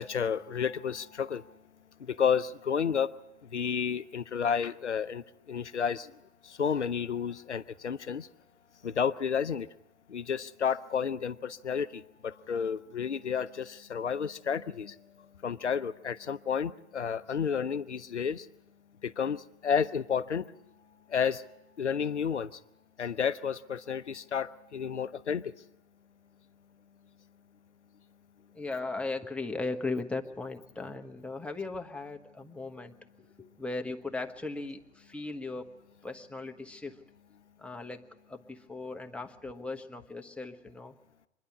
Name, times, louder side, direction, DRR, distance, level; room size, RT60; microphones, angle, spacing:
voice 1, 0.0-1.5 2.0-3.1 3.5-6.1 6.4-8.3 8.8-9.7 10.1-15.0 15.4-18.5 19.0-20.5 21.1-21.4 21.8-22.5 23.0-25.5, left 7 dB, 90° left, 14 dB, 0.7 m, -31 dB
voice 2, 28.5-35.7 36.0-37.0 37.6-38.0 38.3-40.9, left 3 dB, 5° left, 3 dB, 1.2 m, -38 dB
25.5 x 11.0 x 9.7 m, 0.94 s
figure-of-eight pair, 95°, 34 cm